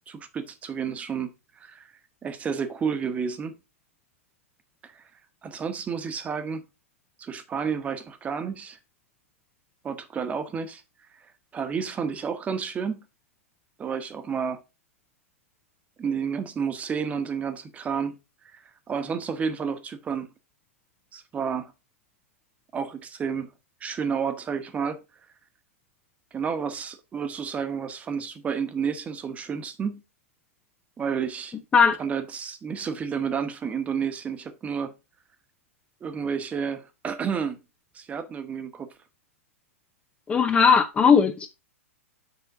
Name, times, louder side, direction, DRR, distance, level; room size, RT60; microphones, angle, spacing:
voice 1, 0.1-1.3 1.6-1.9 2.2-3.6 4.8-5.0 5.4-6.6 7.2-8.8 9.8-10.8 11.5-13.0 13.8-14.6 16.0-18.2 18.4-18.6 18.9-20.3 21.1-21.7 22.7-23.5 23.8-25.0 26.3-30.0 31.0-31.6 32.0-34.9 36.0-37.6 37.9-38.9, right 6 dB, 20° right, 1.1 m, -30 dB
voice 2, 40.3-41.5, left 6 dB, 15° left, 0.5 m, -18 dB
7.0 x 5.6 x 3.7 m
figure-of-eight pair, 105°, 8 cm